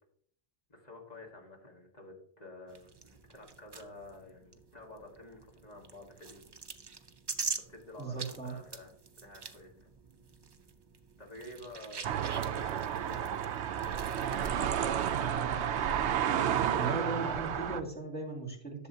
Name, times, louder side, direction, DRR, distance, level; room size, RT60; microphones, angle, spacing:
voice 1, 0.7-6.5 7.5-9.9 11.2-15.4, left 1 dB, 35° left, 0 dB, 1.7 m, -51 dB
sound 1, 2.7-15.3, right 4 dB, 40° right, 0.3 m, -45 dB
voice 2, 8.0-8.5 16.7-18.9, right 2 dB, 10° left, -2 dB, 2.0 m, -37 dB
sound 2, 12.0-17.8, right 9 dB, 70° right, 0.9 m, -31 dB
11.0 x 6.8 x 2.8 m, 0.63 s
omnidirectional pair, 1.2 m